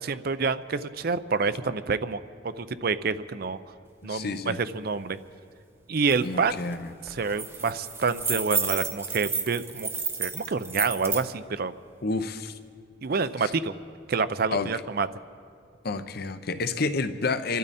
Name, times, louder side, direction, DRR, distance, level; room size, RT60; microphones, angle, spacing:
voice 1, 0.0-3.6 4.0-5.2 5.9-6.6 7.1-9.9 10.2-11.7 13.0-13.7 14.1-15.1, right 4 dB, 50° right, 13 dB, 0.5 m, -28 dB
voice 2, 4.0-4.6 6.2-6.9 12.0-12.5 13.4-13.5 14.5-14.7 15.8-17.6, left 3 dB, 50° left, 10 dB, 0.7 m, -29 dB
sound 1, 6.1-6.2 6.5-6.7 7.1-11.2, right 5 dB, 15° right, 0.9 m, -31 dB
27.0 x 12.0 x 4.2 m, 2.2 s
head